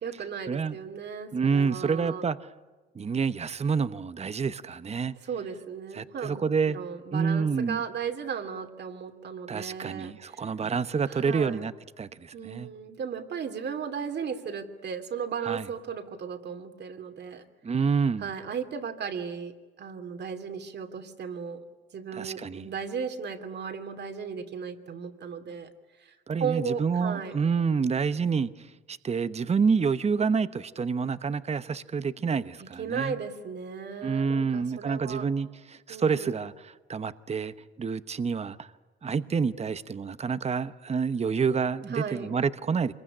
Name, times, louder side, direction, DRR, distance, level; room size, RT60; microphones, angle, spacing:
voice 1, 0.0-2.2 5.2-10.4 11.1-11.6 12.3-17.5 18.2-21.6 21.9-25.7 26.0-27.4 32.6-35.3 35.9-36.4 41.9-42.3, right 6 dB, 60° right, 2.7 m, -36 dB
voice 2, 1.3-2.4 2.9-5.1 5.9-6.8 7.1-7.8 9.5-12.7 15.5-15.6 17.6-18.3 22.1-22.7 26.3-33.1 34.0-38.7 39.0-42.9, right 5 dB, 30° right, 1.0 m, -28 dB
25.5 x 22.0 x 10.0 m
cardioid pair, 90°, 20 cm